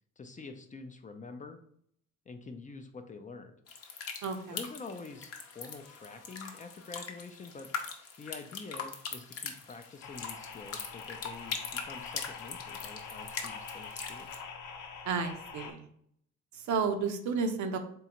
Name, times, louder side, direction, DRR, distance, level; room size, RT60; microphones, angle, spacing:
voice 1, 0.2-1.6 2.3-3.6 4.5-7.7 8.2-11.6 11.8-14.3, left 4 dB, 25° left, 7 dB, 0.4 m, -46 dB
sound 1, 3.7-14.4, left 5 dB, 50° left, 0.7 m, -42 dB
voice 2, 4.2-4.6 15.0-15.9 16.5-17.8, right 5 dB, 70° right, 6 dB, 0.7 m, -32 dB
sound 2, 10.0-15.7, left 5 dB, 80° left, 0.7 m, -44 dB
3.7 x 3.2 x 2.9 m, 0.67 s
cardioid pair, 90°, 30 cm